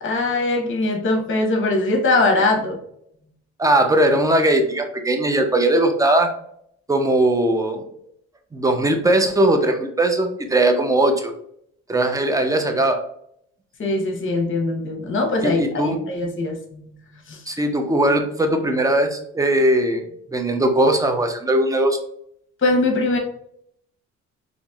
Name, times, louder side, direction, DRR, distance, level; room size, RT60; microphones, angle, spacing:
voice 1, 0.0-2.8 13.8-16.8 17.3-17.4 22.6-23.2, left 2 dB, 40° left, 3 dB, 1.0 m, -21 dB
voice 2, 3.6-6.3 6.9-7.8 8.5-11.3 11.9-13.0 15.4-16.1 17.5-20.0 20.3-22.0, right 1 dB, 10° right, 5 dB, 0.6 m, -19 dB
4.0 x 3.0 x 2.3 m, 0.70 s
cardioid pair, 90°, 30 cm